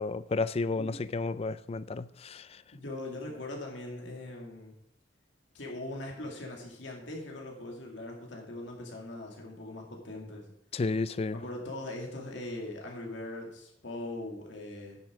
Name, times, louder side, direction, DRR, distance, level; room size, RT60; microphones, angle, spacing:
voice 1, 0.0-2.6 10.7-11.4, left 3 dB, 30° left, 0.4 m, -32 dB
voice 2, 2.7-4.7 5.5-10.5 11.3-15.0, left 1 dB, 70° left, 2.1 m, -41 dB
9.7 x 7.6 x 5.0 m
head